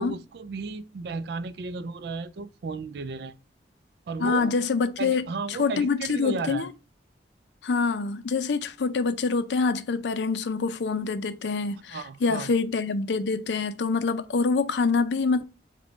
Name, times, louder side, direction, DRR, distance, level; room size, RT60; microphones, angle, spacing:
voice 1, 0.0-3.4 4.1-4.5 5.0-6.7 11.9-12.5, right 4 dB, 65° right, 0.4 m, -34 dB
voice 2, 4.2-6.7 7.6-15.4, left 4 dB, 80° left, 0.5 m, -26 dB
5.0 x 2.2 x 4.5 m
head